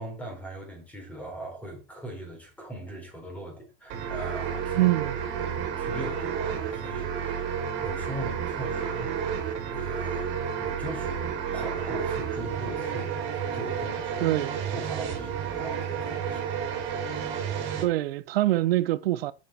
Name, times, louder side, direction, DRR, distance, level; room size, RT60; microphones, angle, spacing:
voice 1, 0.0-5.0 5.6-9.4 9.7-14.4 14.7-17.1, right 1 dB, 5° left, 3.6 m, -40 dB
sound 1, 3.9-17.8, right 7 dB, 40° right, 3.2 m, -31 dB
voice 2, 4.7-5.2 14.2-14.6 17.8-19.3, right 16 dB, 90° right, 0.6 m, -24 dB
7.4 x 7.1 x 4.4 m
supercardioid pair, 155°, 29 cm